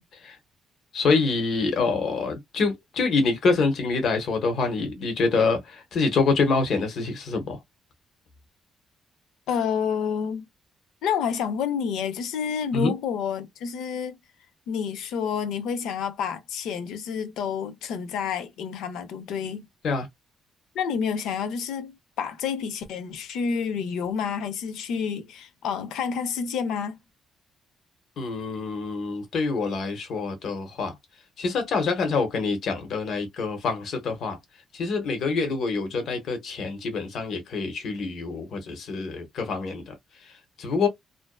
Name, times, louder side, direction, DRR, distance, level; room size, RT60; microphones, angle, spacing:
voice 1, 0.9-7.6 12.7-12.9 19.8-20.1 28.2-30.9 31.4-34.4 34.7-39.9 40.6-40.9, left 4 dB, 65° left, 0.9 m, -26 dB
voice 2, 9.5-10.4 11.0-14.2 14.7-19.7 20.7-27.0, left 7 dB, 85° left, 0.5 m, -29 dB
2.5 x 2.2 x 2.2 m
cardioid pair, 90°, 0 cm